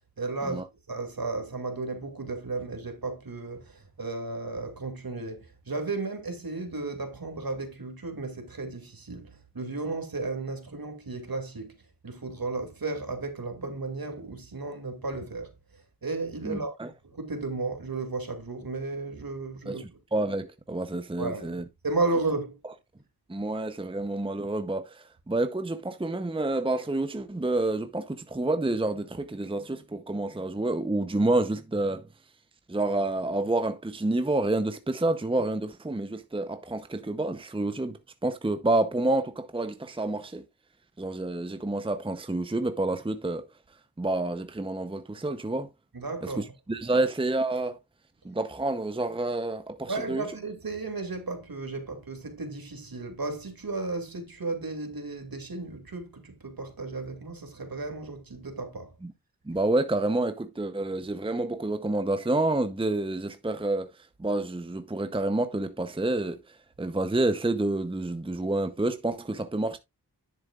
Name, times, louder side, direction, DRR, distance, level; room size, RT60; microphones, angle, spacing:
voice 1, 0.2-0.6 0.9-11.8 12.0-15.5 16.0-16.8 17.0-20.0 21.2-22.6 45.9-46.5 46.9-47.0 49.9-58.9, right 3 dB, 60° right, 2.5 m, -34 dB
voice 2, 16.4-16.9 19.7-21.6 23.3-32.0 32.7-40.4 41.0-43.4 44.0-45.7 46.2-46.3 46.7-47.8 48.2-50.2 59.5-63.9 64.2-66.4 66.8-69.8, right 2 dB, 15° right, 0.8 m, -28 dB
10.0 x 7.6 x 2.4 m
cardioid pair, 45°, 40 cm